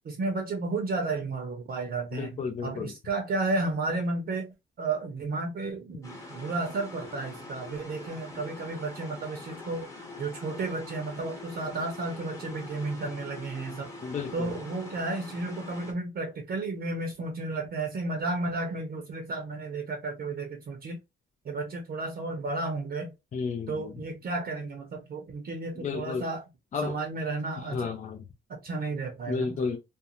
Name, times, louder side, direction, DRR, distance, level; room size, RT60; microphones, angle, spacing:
voice 1, 0.0-9.9 10.2-13.9 14.3-21.0 21.4-23.1 23.7-26.4 26.8-27.9 28.5-29.7, right 3 dB, 50° right, 0.7 m, -33 dB
voice 2, 2.1-2.9 14.0-14.5 23.3-23.9 25.8-26.2 26.7-27.0 27.6-28.2 29.3-29.8, left 5 dB, 40° left, 0.5 m, -32 dB
sound 1, 6.0-15.9, left 2 dB, 15° left, 1.1 m, -44 dB
2.5 x 2.1 x 2.9 m
cardioid pair, 90°, 20 cm